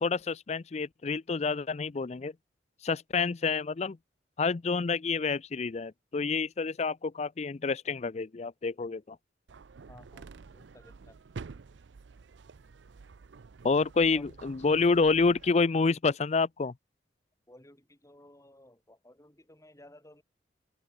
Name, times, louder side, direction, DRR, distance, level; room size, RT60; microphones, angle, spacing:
voice 1, 0.0-2.3 2.8-4.0 4.4-9.2 13.6-16.7, left 4 dB, 35° left, 0.4 m, -28 dB
sound 1, 9.5-15.5, right 4 dB, 90° right, 0.5 m, -49 dB
voice 2, 9.9-10.2 10.5-11.2 14.1-14.3 17.5-20.2, left 1 dB, 15° left, 3.2 m, -55 dB
head